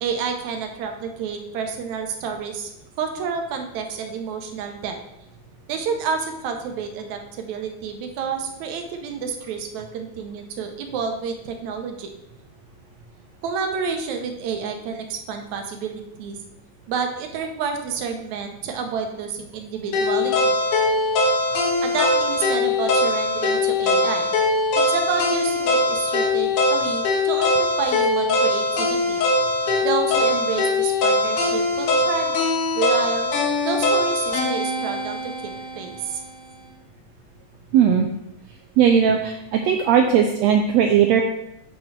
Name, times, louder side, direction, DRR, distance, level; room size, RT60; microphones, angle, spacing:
voice 1, 0.0-2.7 3.0-5.0 5.7-12.1 13.4-16.4 16.9-20.5 21.8-24.3 24.8-29.2 29.8-32.4 32.7-33.3 33.7-35.5 35.8-36.2, right 6 dB, 75° right, 4 dB, 2.1 m, -29 dB
sound 1, 19.9-36.0, left 2 dB, 80° left, 2.7 m, -21 dB
voice 2, 37.7-38.1 38.8-41.2, right 8 dB, 90° right, 4 dB, 1.5 m, -17 dB
7.5 x 7.2 x 3.2 m, 0.87 s
omnidirectional pair, 3.6 m